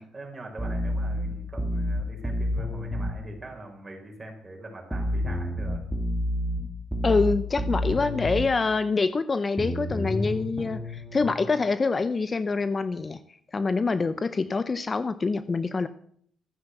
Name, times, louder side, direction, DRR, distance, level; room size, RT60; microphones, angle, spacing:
voice 1, 0.0-5.8, right 2 dB, 25° right, 1 dB, 5.1 m, -42 dB
sound 1, 0.6-3.2 4.9-8.5 9.6-11.2, left 1 dB, ahead, 2.9 m, -29 dB
voice 2, 7.0-13.2 13.5-15.9, left 4 dB, 30° left, 13 dB, 0.7 m, -25 dB
14.0 x 7.9 x 7.8 m, 0.63 s
cardioid pair, 90°, 0 cm